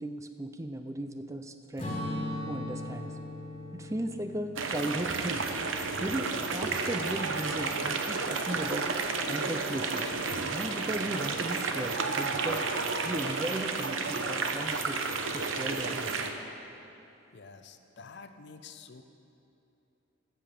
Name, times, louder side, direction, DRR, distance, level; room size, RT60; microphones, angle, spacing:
voice 1, 0.0-2.0 2.5-3.2 3.7-5.5 6.0-10.1 10.5-12.6 13.0-15.0 15.3-16.2, right 1 dB, 15° right, 7 dB, 0.4 m, -36 dB
Strum, 1.8-6.4, left 1 dB, 30° left, 1.8 m, -39 dB
sound 1, 4.6-16.3, right 4 dB, 70° right, 0.8 m, -31 dB
voice 2, 17.3-19.0, left 5 dB, 55° left, 9 dB, 0.6 m, -49 dB
15.5 x 5.8 x 6.8 m, 2.8 s
head